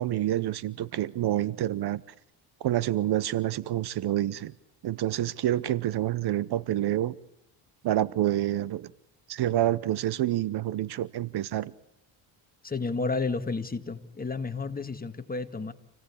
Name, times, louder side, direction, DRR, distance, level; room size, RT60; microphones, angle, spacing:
voice 1, 0.0-2.0 2.6-4.5 4.8-7.2 7.8-8.9 9.3-11.7, right 13 dB, 55° right, 0.9 m, -28 dB
voice 2, 12.6-15.7, left 4 dB, 20° left, 1.9 m, -31 dB
28.0 x 17.5 x 8.5 m
cardioid pair, 100°, 48 cm